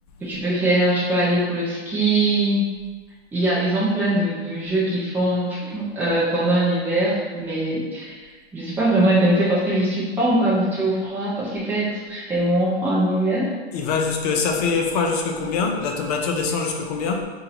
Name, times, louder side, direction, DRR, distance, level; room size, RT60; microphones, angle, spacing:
voice 1, 0.2-2.6 3.3-13.4, right 1 dB, 5° right, -8 dB, 0.7 m, -22 dB
voice 2, 13.7-17.2, left 5 dB, 40° left, 2 dB, 0.5 m, -23 dB
2.7 x 2.6 x 4.2 m, 1.4 s
hypercardioid pair, 140°, 33 cm